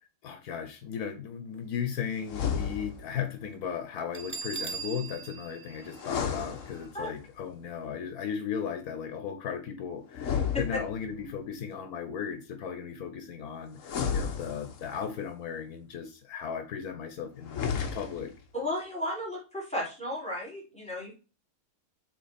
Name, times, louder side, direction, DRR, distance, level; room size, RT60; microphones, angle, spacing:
voice 1, 0.2-18.3, left 7 dB, 80° left, 7 dB, 1.4 m, -36 dB
sound 1, 2.2-3.2 5.9-7.2 10.1-11.3 13.8-15.1 17.4-18.4, left 7 dB, 60° left, 1.2 m, -33 dB
Bell, 4.1-6.8, right 5 dB, 50° right, 0.3 m, -40 dB
voice 2, 18.5-21.1, left 1 dB, 5° left, -5 dB, 3.0 m, -34 dB
6.3 x 4.0 x 4.3 m, 0.32 s
omnidirectional pair, 1.6 m